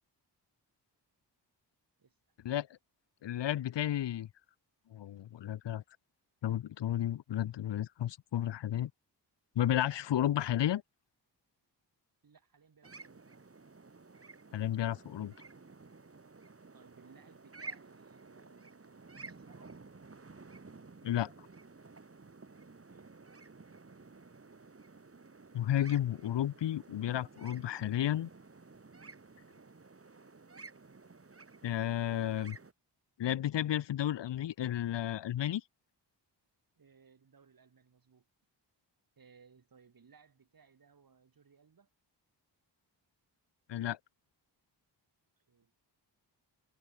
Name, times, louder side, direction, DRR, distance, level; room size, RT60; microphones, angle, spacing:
voice 1, 2.0-2.4 12.2-13.4 16.1-16.4 16.7-19.7 22.6-23.1 36.8-38.3 39.2-41.9 45.4-45.7, right 6 dB, 50° right, 5.8 m, -63 dB
voice 2, 3.2-4.3 4.9-5.8 6.4-8.9 9.6-10.8 14.5-15.3 21.0-21.3 25.5-28.3 31.6-32.6 33.2-35.6 43.7-44.0, left 11 dB, 80° left, 0.8 m, -32 dB
sound 1, 12.8-32.7, right 3 dB, 30° right, 6.8 m, -53 dB
wide cardioid pair, 120°, 42 cm